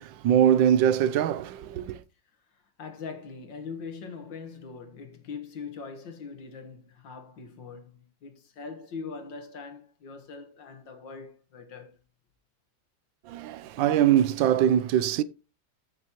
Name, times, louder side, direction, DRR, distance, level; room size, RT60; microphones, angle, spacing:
voice 1, 0.0-2.0 13.3-15.2, right 10 dB, 85° right, 1.4 m, -22 dB
voice 2, 2.3-12.0, left 5 dB, 75° left, 2.1 m, -42 dB
14.0 x 6.4 x 3.0 m
omnidirectional pair, 2.0 m